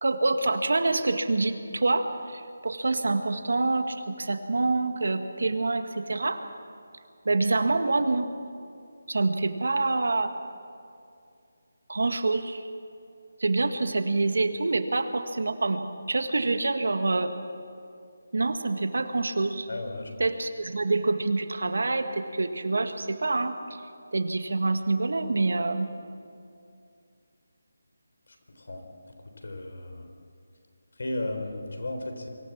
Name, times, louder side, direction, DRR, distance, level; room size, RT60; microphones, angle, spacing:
voice 1, 0.0-6.4 7.3-8.3 9.1-10.3 11.9-12.7 13.4-15.8 16.1-17.3 18.3-19.7 20.2-23.8 24.1-25.9, right 3 dB, 70° right, 8 dB, 1.7 m, -26 dB
voice 2, 19.7-20.1 28.6-28.8 29.4-30.1 31.0-32.3, left 1 dB, 70° left, 5 dB, 3.8 m, -34 dB
24.5 x 15.5 x 7.3 m, 2.4 s
figure-of-eight pair, 170°, 0 cm